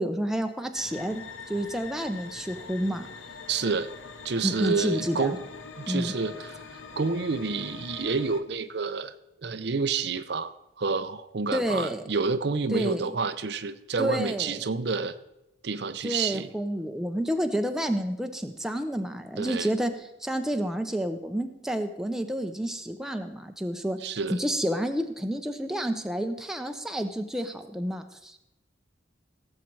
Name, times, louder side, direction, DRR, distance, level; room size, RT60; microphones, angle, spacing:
voice 1, 0.0-3.1 4.4-5.4 5.9-6.1 11.5-12.0 12.7-13.1 14.0-14.6 16.0-19.9 20.2-28.4, equal, 5° right, 6 dB, 0.7 m, -29 dB
sound 1, 0.7-8.4, left 4 dB, 90° left, 1.1 m, -43 dB
voice 2, 3.5-3.9 4.2-5.4 5.8-9.1 9.4-15.1 15.6-16.5 19.4-19.7 24.0-24.4, right 4 dB, 60° right, 11 dB, 0.6 m, -29 dB
17.0 x 7.4 x 4.7 m, 0.92 s
head